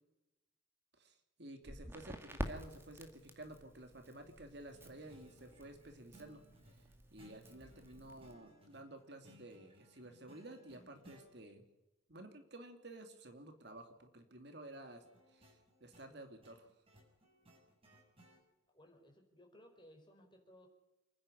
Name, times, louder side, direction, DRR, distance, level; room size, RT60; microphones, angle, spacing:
voice 1, 1.0-6.4 7.1-11.6 12.1-15.0 15.3-16.7, right 1 dB, 55° right, 6 dB, 2.6 m, -53 dB
Crackle, 1.6-8.3, equal, 10° right, 2.0 m, -49 dB
sound 1, 4.7-11.3 15.0-18.4, equal, 30° right, 6.8 m, -64 dB
voice 2, 18.7-20.7, equal, 25° left, 3 dB, 4.6 m, -61 dB
28.5 x 10.5 x 9.8 m, 1.0 s
head